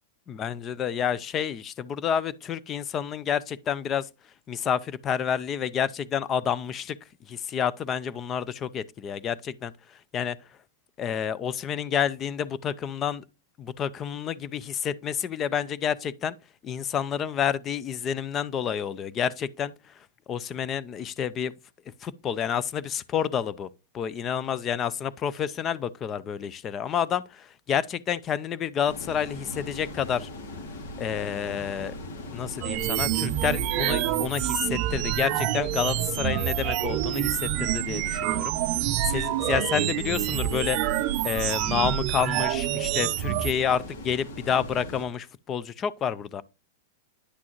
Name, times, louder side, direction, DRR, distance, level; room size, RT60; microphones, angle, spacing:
voice 1, 0.3-4.1 4.5-7.0 7.3-9.7 10.1-10.4 11.0-13.2 13.6-16.4 16.6-19.7 20.3-21.5 22.0-23.7 23.9-30.3 31.0-32.0 32.3-40.8 41.2-46.4, left 8 dB, 25° left, 0.5 m, -29 dB
sound 1, 28.8-45.1, left 2 dB, 70° left, 2.0 m, -40 dB
sound 2, 32.6-43.5, right 14 dB, 45° right, 0.5 m, -27 dB
9.6 x 6.1 x 3.0 m
hypercardioid pair, 135°, 0 cm